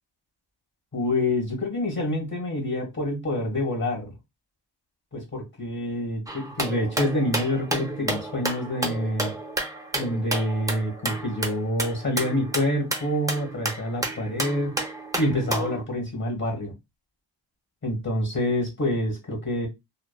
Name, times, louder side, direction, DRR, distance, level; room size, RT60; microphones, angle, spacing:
voice 1, 0.9-4.1 5.1-9.3 10.0-14.7 15.2-16.7 17.8-19.7, left 1 dB, 25° left, 1.6 m, -27 dB
sound 1, 6.3-15.8, right 2 dB, 10° right, 0.6 m, -31 dB
3.3 x 2.0 x 2.2 m
cardioid pair, 85°, 45 cm